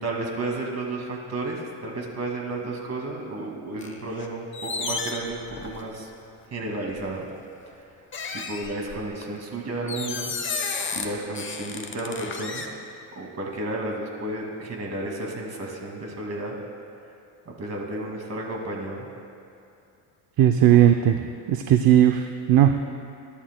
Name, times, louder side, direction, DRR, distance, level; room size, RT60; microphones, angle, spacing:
voice 1, 0.0-6.1 6.5-7.3 8.3-10.3 10.9-12.7 13.2-16.6 17.5-19.1 20.7-20.9, right 2 dB, 35° right, 0 dB, 2.2 m, -32 dB
sound 1, 3.8-4.3 4.5-6.0 6.9-7.1 8.1-9.2 9.9-11.1 11.3-12.7, left 4 dB, 25° left, 1.0 m, -32 dB
voice 2, 20.4-21.2 21.5-22.8, right 11 dB, 55° right, 7 dB, 0.6 m, -17 dB
22.5 x 11.0 x 2.2 m, 2.7 s
cardioid pair, 125°, 43 cm